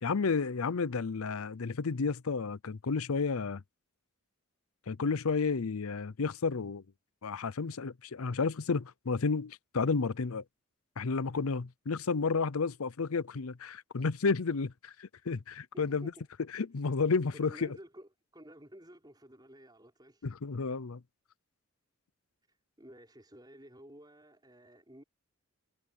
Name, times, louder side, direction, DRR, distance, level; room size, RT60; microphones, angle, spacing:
voice 1, 0.0-3.6 4.9-6.8 7.2-10.4 11.0-16.1 16.5-17.8 20.2-21.0, left 4 dB, 80° left, 0.6 m, -31 dB
voice 2, 15.7-16.3 17.3-20.3 22.5-25.0, equal, 20° right, 5.9 m, -53 dB
head